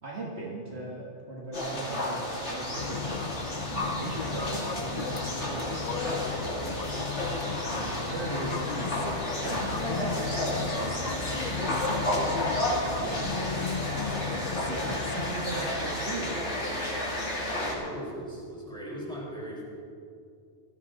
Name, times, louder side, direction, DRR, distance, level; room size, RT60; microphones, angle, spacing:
voice 1, 0.0-3.3 3.7-6.9 7.7-12.4 13.0-16.5, right 2 dB, 50° right, -3 dB, 2.0 m, -39 dB
sound 1, 1.5-17.7, left 1 dB, 55° left, 3.4 m, -32 dB
sound 2, 2.8-15.3, left 5 dB, 40° left, 0.6 m, -36 dB
voice 2, 17.5-19.6, equal, 5° left, -5 dB, 4.6 m, -39 dB
18.0 x 14.5 x 4.1 m, 2.3 s
omnidirectional pair, 1.4 m